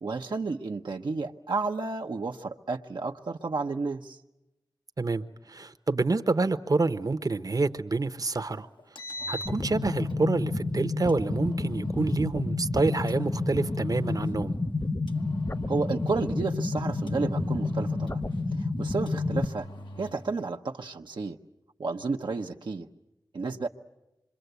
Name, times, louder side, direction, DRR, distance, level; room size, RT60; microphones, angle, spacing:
voice 1, 0.0-4.2 15.7-18.2 18.6-19.7 20.0-21.4 21.8-22.9 23.3-23.7, right 4 dB, 85° right, 3 dB, 0.9 m, -31 dB
voice 2, 5.0-8.7 9.3-14.5, right 3 dB, 50° right, 8 dB, 0.9 m, -27 dB
Engine, 8.8-10.3 11.1-12.3 13.1-14.4 15.1-16.4 17.1-18.4 19.1-20.3, left 1 dB, 80° left, 1.2 m, -42 dB
sound 1, 9.5-19.5, left 3 dB, 35° left, 1.0 m, -30 dB
26.0 x 23.5 x 8.1 m, 0.95 s
wide cardioid pair, 50°, 8 cm